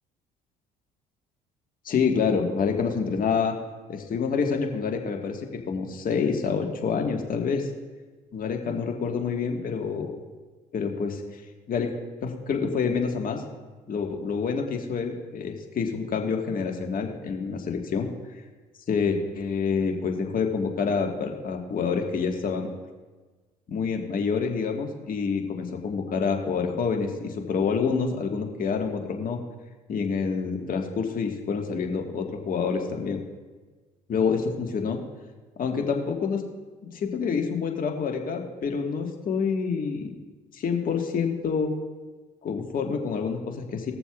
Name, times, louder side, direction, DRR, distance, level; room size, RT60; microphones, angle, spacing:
voice 1, 1.8-3.5 3.9-7.7 8.3-10.2 10.7-11.4 11.7-11.9 12.2-13.4 13.9-18.1 18.9-22.7 23.7-29.4 29.9-33.2 34.1-35.0 35.6-36.4 36.8-40.1 40.5-41.7 42.4-43.9, left 5 dB, 50° left, 2 dB, 1.6 m, -27 dB
20.5 x 6.9 x 2.4 m, 1.3 s
hypercardioid pair, 60°, 18 cm